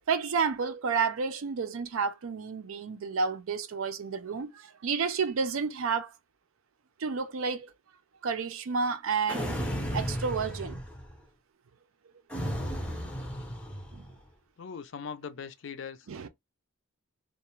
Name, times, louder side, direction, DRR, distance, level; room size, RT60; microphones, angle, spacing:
voice 1, 0.1-6.1 7.0-7.7 8.2-9.6 9.9-10.8 13.9-14.0 16.1-16.3, right 5 dB, 80° right, 0.5 m, -30 dB
sound 1, 9.3-11.2 12.3-14.1, equal, 5° left, 0.5 m, -34 dB
voice 2, 14.6-16.1, left 6 dB, 60° left, 0.4 m, -40 dB
2.4 x 2.1 x 2.9 m
head